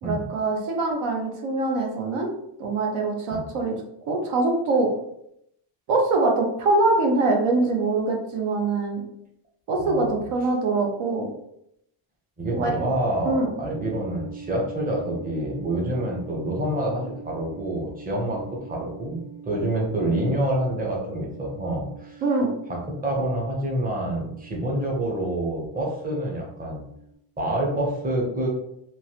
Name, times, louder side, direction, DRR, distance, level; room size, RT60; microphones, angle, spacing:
voice 1, 0.0-2.3 2.6-3.8 4.1-4.9 5.9-9.0 9.7-11.3 12.5-12.8 13.2-13.5 22.2-22.5, right 3 dB, 80° right, 1 dB, 0.9 m, -23 dB
voice 2, 9.8-10.1 12.4-22.2 22.7-26.8 27.4-28.5, right 1 dB, 20° right, -1 dB, 0.7 m, -27 dB
sound 1, 13.6-27.1, right 6 dB, 40° left, 0.4 m, -44 dB
3.0 x 2.6 x 2.8 m, 0.77 s
cardioid pair, 125°, 49 cm